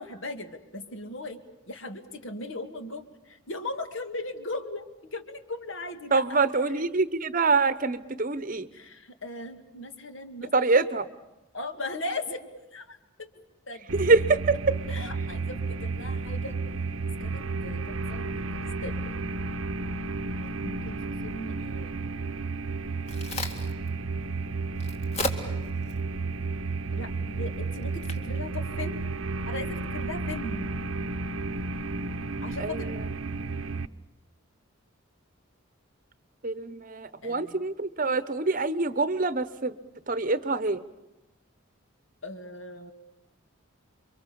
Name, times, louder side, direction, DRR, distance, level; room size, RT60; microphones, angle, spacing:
voice 1, 0.0-1.4 1.7-6.8 8.7-10.8 11.5-12.4 12.7-13.3 13.7-14.0 14.9-16.6 17.2-18.5 18.8-19.0 20.4-22.0 26.9-29.0 29.5-30.7 32.4-32.9 37.2-37.6 42.2-42.9, left 2 dB, 65° left, 7 dB, 2.2 m, -38 dB
voice 2, 6.1-8.7 10.5-11.1 13.9-14.8 32.6-33.1 36.4-39.7 40.1-40.8, right 3 dB, 40° right, 14 dB, 0.9 m, -25 dB
sound 1, 13.9-33.9, right 3 dB, 75° right, 0.9 m, -32 dB
Crack, 22.7-29.6, left 2 dB, 30° left, 2.1 m, -40 dB
29.5 x 24.0 x 7.0 m, 0.99 s
head